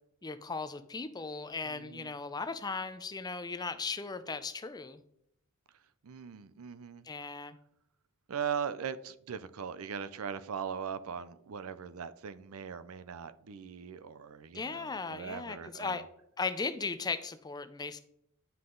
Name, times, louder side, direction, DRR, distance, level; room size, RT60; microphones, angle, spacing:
voice 1, 0.2-5.0 7.0-7.6 14.5-16.0 16.4-18.0, left 4 dB, 20° left, 0.4 m, -37 dB
voice 2, 1.6-2.1 6.0-7.1 8.3-16.0, right 7 dB, 80° right, 0.5 m, -40 dB
9.8 x 5.7 x 3.8 m
head